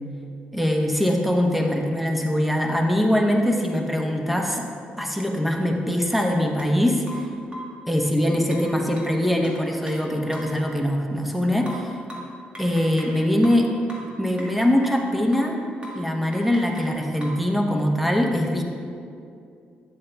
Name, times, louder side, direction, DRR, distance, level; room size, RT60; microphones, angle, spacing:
voice 1, 0.5-4.6 5.0-7.3 7.9-11.9 12.6-13.7 14.2-15.7 15.9-18.6, left 1 dB, 5° right, 2 dB, 0.9 m, -22 dB
sound 1, 6.1-6.2 6.6-6.7 7.1-7.8 8.5-10.6 11.7-13.2 13.4-15.0 15.3-15.6 15.8-16.1 16.3-17.5, right 1 dB, 30° right, 1.5 m, -41 dB
9.1 x 7.6 x 2.3 m, 2.4 s
cardioid pair, 80°, 3 cm